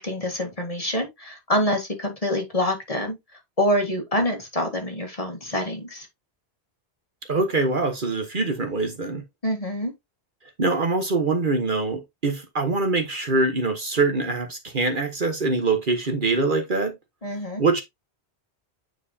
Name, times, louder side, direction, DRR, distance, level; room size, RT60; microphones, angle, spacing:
voice 1, 0.0-3.2 3.6-6.1 9.4-9.9 17.2-17.6, left 1 dB, 30° left, 1.9 m, -26 dB
voice 2, 7.3-9.2 10.6-16.9 17.6-17.8, right 3 dB, 50° right, 1.4 m, -24 dB
9.1 x 4.7 x 2.8 m
omnidirectional pair, 1.1 m